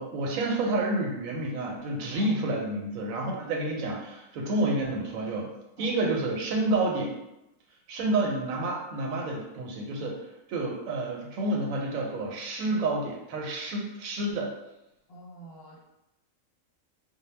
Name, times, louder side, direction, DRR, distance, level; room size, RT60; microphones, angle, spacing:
voice 1, 0.0-5.5 5.8-7.2 7.9-10.2 10.5-14.5, right 2 dB, 85° right, 0 dB, 1.0 m, -29 dB
voice 2, 15.1-15.8, right 2 dB, 60° left, -5 dB, 0.7 m, -47 dB
2.2 x 2.0 x 3.2 m, 0.90 s
omnidirectional pair, 1.4 m